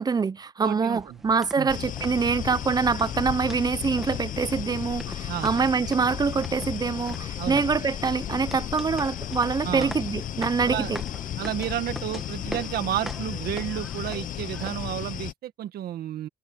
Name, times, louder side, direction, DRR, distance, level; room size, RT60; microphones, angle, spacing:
voice 1, 0.0-11.0, right 5 dB, 25° right, 0.8 m, -25 dB
voice 2, 0.6-1.2 1.6-1.7 5.3-5.5 7.4-7.6 9.6-9.9 10.6-10.9 11.4-16.3, right 12 dB, 65° right, 1.7 m, -31 dB
sound 1, 0.9-15.0, equal, ahead, 2.1 m, -43 dB
sound 2, 1.7-15.3, left 11 dB, 50° left, 1.0 m, -34 dB
cardioid pair, 110°, 17 cm